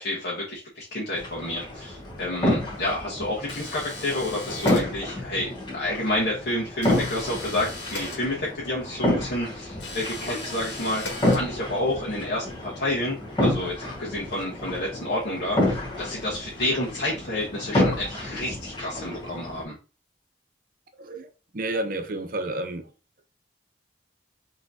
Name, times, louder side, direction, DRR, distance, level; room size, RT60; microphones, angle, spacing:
voice 1, 0.0-11.0 11.3-19.7, left 1 dB, 60° left, 1.3 m, -29 dB
sound 1, 1.2-19.6, left 1 dB, 25° left, 1.3 m, -29 dB
sound 2, 3.5-5.3 6.8-8.7 9.8-11.8, left 2 dB, 90° left, 1.6 m, -38 dB
voice 2, 21.0-22.9, right 2 dB, 50° right, 0.7 m, -31 dB
5.8 x 3.1 x 2.7 m
head